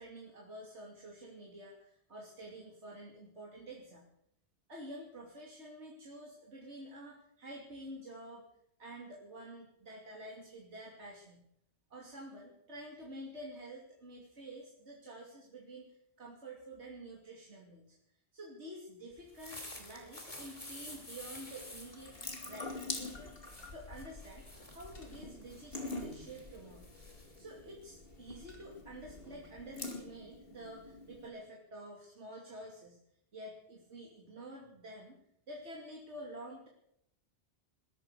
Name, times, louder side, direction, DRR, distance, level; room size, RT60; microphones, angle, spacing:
voice 1, 0.0-4.1 4.7-8.4 8.8-11.4 11.9-18.0 18.3-24.5 24.7-26.9 27.4-33.0 33.3-35.2 35.5-36.7, right 1 dB, 80° right, -2 dB, 3.1 m, -49 dB
sound 1, 19.2-28.5, left 1 dB, 30° left, 2.9 m, -52 dB
Water tap faucet / Sink (filling or washing) / Drip, 21.5-31.3, left 2 dB, 55° left, 2.7 m, -46 dB
22.0 x 13.0 x 4.9 m, 0.73 s
omnidirectional pair, 1.2 m